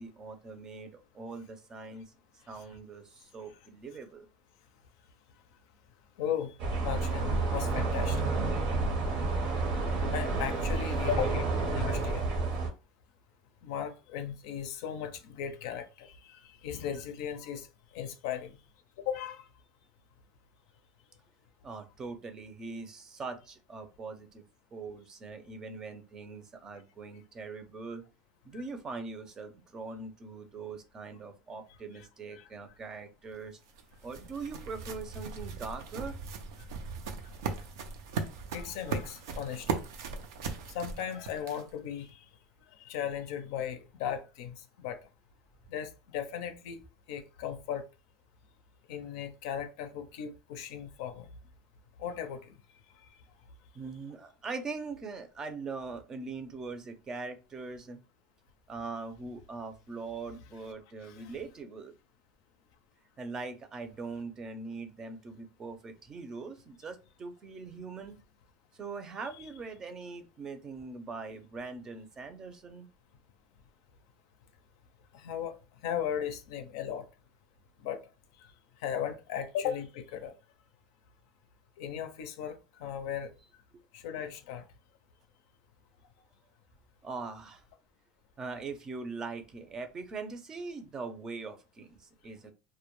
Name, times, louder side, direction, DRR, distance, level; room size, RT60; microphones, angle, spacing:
voice 1, 0.0-2.1 2.5-4.3 21.6-24.4 24.7-28.0 28.4-33.6 34.0-36.2 53.7-58.0 58.7-61.9 63.2-68.2 68.7-72.9 87.0-87.6 88.4-92.5, right 4 dB, 30° right, 0.5 m, -42 dB
voice 2, 6.2-6.5 6.8-8.3 9.6-12.2 13.6-17.7 17.9-18.6 19.0-19.5 31.9-32.0 32.3-32.5 38.5-39.8 40.7-42.3 42.8-45.0 45.7-46.8 47.1-47.8 48.9-51.3 52.0-52.6 61.0-61.3 75.1-75.6 75.8-77.0 77.8-78.0 78.8-80.3 81.8-83.3 83.9-84.6, left 9 dB, 80° left, 0.4 m, -37 dB
sound 1, 6.6-12.7, right 3 dB, 70° right, 0.8 m, -30 dB
sound 2, 33.3-41.9, right 5 dB, 90° right, 0.4 m, -38 dB
2.2 x 2.1 x 3.0 m
supercardioid pair, 115°, 2 cm